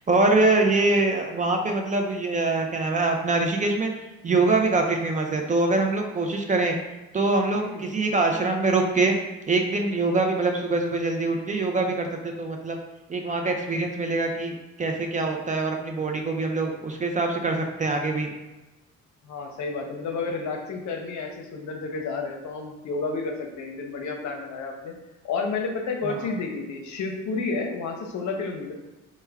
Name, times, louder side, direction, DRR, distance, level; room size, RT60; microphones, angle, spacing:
voice 1, 0.1-3.9 4.2-6.8 7.1-9.2 9.5-12.8 13.1-18.3 26.2-26.3, right 3 dB, 25° right, 3 dB, 0.4 m, -24 dB
voice 2, 7.6-7.9 19.2-24.9 25.2-28.7, left 4 dB, 70° left, 2 dB, 0.7 m, -31 dB
3.3 x 2.1 x 3.4 m, 1.1 s
cardioid pair, 90°, 30 cm